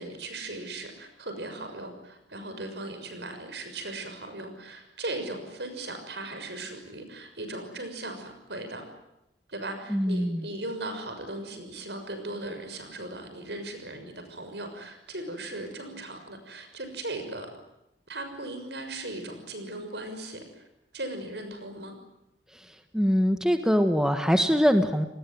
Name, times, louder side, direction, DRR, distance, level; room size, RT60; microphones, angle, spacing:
voice 1, 0.0-8.8 9.5-17.5 18.1-20.6 20.9-21.9, right 2 dB, 75° right, 7 dB, 6.6 m, -38 dB
voice 2, 9.9-10.5 22.9-25.0, equal, 5° right, 7 dB, 1.5 m, -23 dB
29.5 x 19.5 x 9.4 m, 0.87 s
head